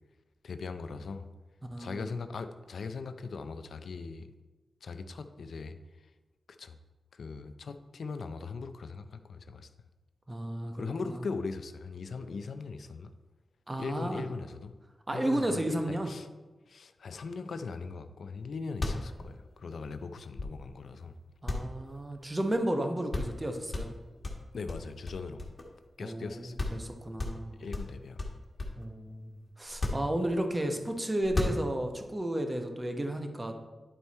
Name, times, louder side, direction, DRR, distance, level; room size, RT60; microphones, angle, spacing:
voice 1, 0.4-1.3 1.8-4.3 4.8-5.8 6.6-6.8 7.1-9.7 10.7-13.1 13.8-14.7 15.1-16.3 16.7-21.2 24.5-25.5 26.0-26.5 27.6-28.2, left 4 dB, 80° left, 9 dB, 0.5 m, -39 dB
voice 2, 1.6-2.2 10.3-11.1 13.7-14.2 15.1-16.1 21.4-23.9 26.0-27.6 28.7-33.6, right 1 dB, 25° right, 5 dB, 1.1 m, -33 dB
sound 1, 18.4-18.5 18.7-20.9 21.5-22.5 22.8-22.9 23.1-23.4 23.7-25.9 26.2-26.3 26.6-26.9 27.2-28.9 29.7-30.6 31.2-32.0, left 2 dB, 45° left, 1.5 m, -35 dB
10.0 x 4.5 x 4.2 m, 1.2 s
cardioid pair, 60°, 0 cm